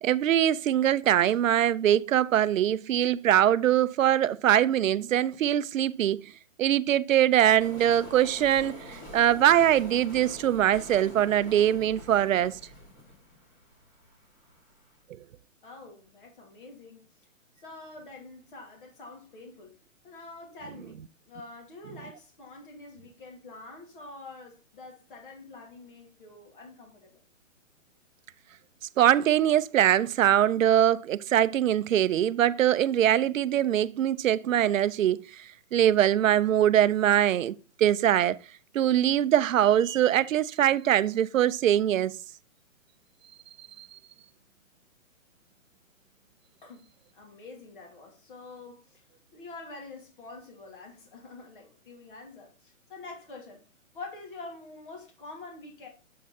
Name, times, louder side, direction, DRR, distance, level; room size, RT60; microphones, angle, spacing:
voice 1, 0.0-6.3 6.6-12.6 29.0-35.4 35.7-38.4 38.7-42.2 43.6-43.9, right 11 dB, 75° right, 0.5 m, -23 dB
sound 1, 7.6-14.6, left 1 dB, 20° left, 2.9 m, -45 dB
voice 2, 15.6-17.1 17.6-19.7 20.0-27.2 46.6-46.9 47.1-49.0 49.3-53.6 53.9-55.9, left 3 dB, 40° left, 2.3 m, -46 dB
7.5 x 4.3 x 4.0 m
hypercardioid pair, 170°, 40 cm